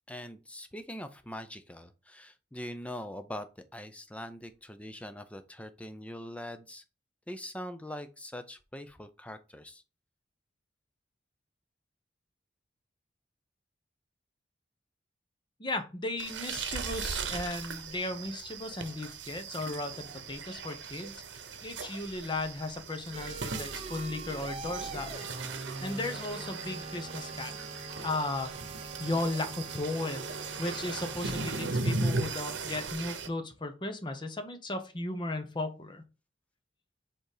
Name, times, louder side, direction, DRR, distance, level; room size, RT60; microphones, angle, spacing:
voice 1, 0.0-6.8 7.3-9.8, left 1 dB, 5° left, 0.6 m, -42 dB
voice 2, 15.6-21.2 21.6-25.3 25.8-27.5 28.0-28.5 29.0-36.0, left 2 dB, 25° left, 0.9 m, -36 dB
sound 1, 16.2-33.3, right 3 dB, 85° right, 0.9 m, -38 dB
sound 2, 23.1-31.7, right 2 dB, 35° right, 0.8 m, -43 dB
5.0 x 3.8 x 4.9 m
head